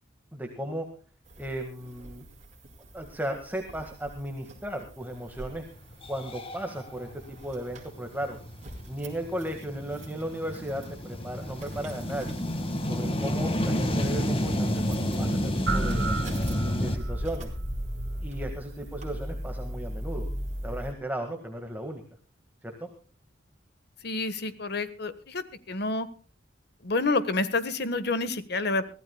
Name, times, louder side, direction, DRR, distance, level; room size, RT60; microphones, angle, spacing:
voice 1, 0.3-0.9 1.4-2.3 2.9-5.6 6.1-8.4 8.8-12.4 12.8-16.1 16.8-17.5 18.2-20.3 20.6-22.0 22.6-22.9, right 1 dB, 10° right, 4 dB, 1.8 m, -35 dB
sound 1, 1.2-20.9, equal, 40° right, 4.1 m, -41 dB
sound 2, 5.4-5.5 5.9-17.0, equal, 30° left, 1.9 m, -30 dB
sound 3, 15.7-17.2, right 3 dB, 85° right, 3.0 m, -31 dB
voice 2, 24.0-25.4 25.7-26.1 26.8-28.9, left 3 dB, 60° left, 13 dB, 1.5 m, -28 dB
23.5 x 16.0 x 2.3 m, 0.37 s
head